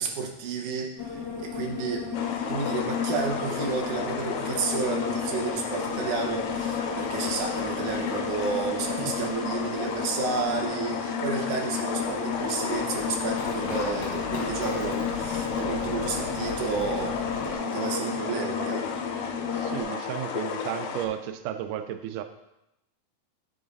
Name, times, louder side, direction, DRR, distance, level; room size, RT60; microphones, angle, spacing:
voice 1, 0.0-2.1 2.5-18.9, right 5 dB, 70° right, 0 dB, 2.2 m, -31 dB
sound 1, 1.0-19.8, left 6 dB, 45° left, 1.3 m, -33 dB
sound 2, 2.1-21.1, left 6 dB, 80° left, 1.6 m, -33 dB
voice 2, 9.0-9.3 11.0-11.1 19.5-22.2, right 11 dB, 90° right, 8 dB, 1.8 m, -34 dB
Run, 11.9-17.5, left 5 dB, 65° left, 1.5 m, -39 dB
10.5 x 3.8 x 4.0 m, 0.86 s
omnidirectional pair, 4.2 m